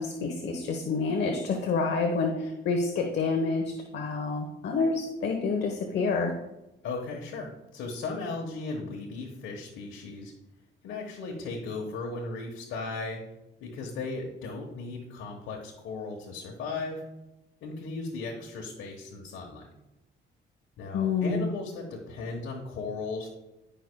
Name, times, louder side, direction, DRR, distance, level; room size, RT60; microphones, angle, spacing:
voice 1, 0.0-3.6 3.9-6.3 20.9-21.5, left 4 dB, 60° left, 3 dB, 1.1 m, -28 dB
voice 2, 6.8-10.3 10.8-13.3 13.6-17.0 17.6-19.7 20.8-23.3, left 3 dB, 85° left, -1 dB, 1.2 m, -36 dB
14.5 x 5.6 x 2.3 m, 0.95 s
cardioid pair, 90°, 20 cm